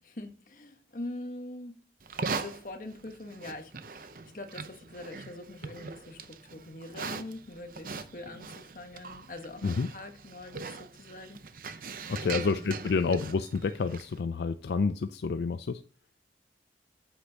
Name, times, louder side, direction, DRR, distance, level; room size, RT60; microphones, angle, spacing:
voice 1, 0.0-1.8 2.3-11.4 11.7-12.6, left 2 dB, 50° left, 1.2 m, -43 dB
Livestock farm animals working animals, 2.0-14.2, right 4 dB, 50° right, 0.6 m, -41 dB
voice 2, 12.1-15.8, left 4 dB, 75° left, 0.4 m, -29 dB
8.2 x 7.9 x 2.8 m
head